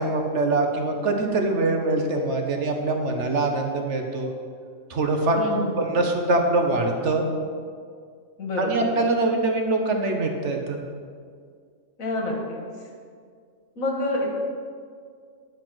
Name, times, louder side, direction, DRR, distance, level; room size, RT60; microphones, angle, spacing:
voice 1, 0.0-4.3 4.9-5.4 5.8-7.3 8.6-10.8, right 2 dB, 60° right, 3 dB, 1.3 m, -23 dB
voice 2, 5.4-5.8 8.4-8.9 12.0-12.6 13.8-14.3, left 2 dB, 85° left, 0 dB, 2.1 m, -27 dB
10.5 x 5.6 x 6.1 m, 2.1 s
omnidirectional pair, 1.4 m